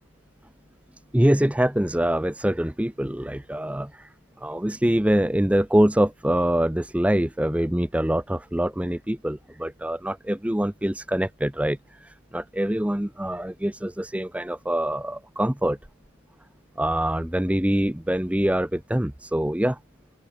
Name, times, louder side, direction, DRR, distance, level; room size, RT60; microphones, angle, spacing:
voice 1, 1.1-4.1 4.4-15.8 16.8-19.8, right 1 dB, 5° right, 0.5 m, -24 dB
open air
head